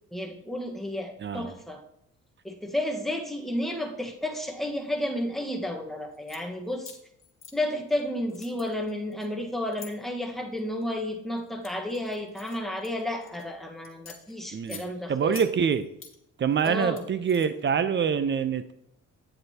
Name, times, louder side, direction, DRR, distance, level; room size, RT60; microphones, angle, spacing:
voice 1, 0.1-1.8 2.4-7.0 7.5-15.4 16.6-17.0, left 1 dB, ahead, 1 dB, 1.3 m, -32 dB
voice 2, 1.2-1.5 14.5-14.8 15.1-15.9 16.4-18.7, right 7 dB, 40° right, 12 dB, 0.7 m, -25 dB
sound 1, 6.1-6.4 6.8-8.0 8.3-9.9 10.6-10.9 11.4-13.4 13.8-14.9 15.3-16.1 16.5-17.7, left 5 dB, 45° left, 1.7 m, -47 dB
9.1 x 7.7 x 2.9 m, 0.77 s
cardioid pair, 90°, 30 cm